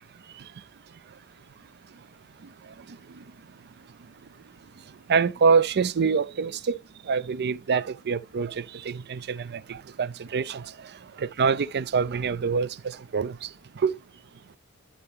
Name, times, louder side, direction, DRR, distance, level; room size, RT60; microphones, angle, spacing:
voice 1, 2.4-3.2 4.9-6.8 7.0-14.0, right 5 dB, 50° right, 0.5 m, -26 dB
11.5 x 4.3 x 3.4 m
head